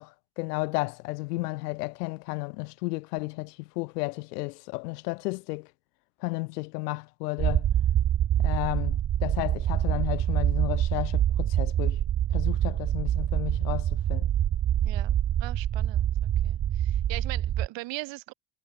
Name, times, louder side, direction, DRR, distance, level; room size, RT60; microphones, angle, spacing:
voice 1, 0.0-5.7 6.2-7.7 8.4-12.0 12.3-14.3, left 25 dB, 90° left, 0.6 m, -33 dB
sound 1, 7.4-17.7, right 11 dB, 30° right, 0.6 m, -26 dB
voice 2, 12.5-12.8 14.8-15.1 15.4-16.1 16.4-18.3, right 20 dB, 70° right, 2.4 m, -40 dB
hypercardioid pair, 70°, 46 cm